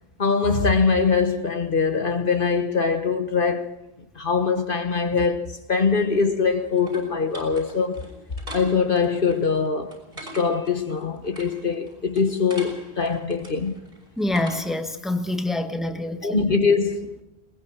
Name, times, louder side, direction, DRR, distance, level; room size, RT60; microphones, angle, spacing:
voice 1, 0.2-3.7 4.1-8.0 8.5-10.0 10.3-13.8 16.2-17.1, left 5 dB, 55° left, 1.4 m, -22 dB
sound 1, 6.1-14.9, right 1 dB, 60° right, 6.6 m, -43 dB
voice 2, 14.2-16.4, left 2 dB, ahead, 1.4 m, -26 dB
20.5 x 20.5 x 6.2 m
omnidirectional pair, 1.1 m